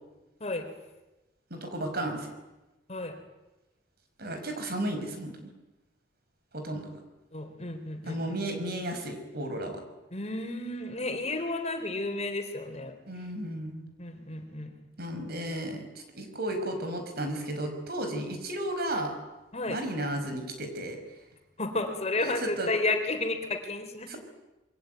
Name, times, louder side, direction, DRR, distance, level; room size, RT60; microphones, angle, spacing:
voice 1, 1.5-2.3 4.2-5.5 6.5-6.9 8.0-9.8 13.1-13.9 15.0-19.1 19.7-21.0 22.2-22.7 24.1-24.2, right 1 dB, 55° right, 6 dB, 5.7 m, -34 dB
voice 2, 7.3-8.4 10.1-12.9 14.0-14.7 19.5-19.8 21.6-24.1, left 2 dB, 35° left, 6 dB, 3.5 m, -32 dB
27.0 x 23.5 x 9.2 m, 1.0 s
head